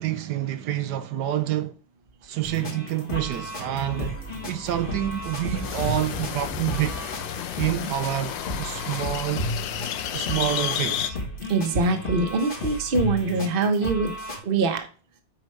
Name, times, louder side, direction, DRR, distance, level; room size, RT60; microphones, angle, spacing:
voice 1, 0.0-1.8 2.2-4.2 4.4-7.0 7.6-9.5 10.1-11.2, right 12 dB, 70° right, 1.1 m, -28 dB
sound 1, 2.4-14.4, left 1 dB, 30° left, 1.4 m, -34 dB
sound 2, 2.6-7.6, left 1 dB, 5° right, 1.4 m, -40 dB
sound 3, 5.6-11.1, left 11 dB, 85° left, 1.4 m, -32 dB
voice 2, 11.5-14.1 14.4-14.9, right 3 dB, 35° right, 1.0 m, -23 dB
8.9 x 4.8 x 3.3 m
omnidirectional pair, 2.0 m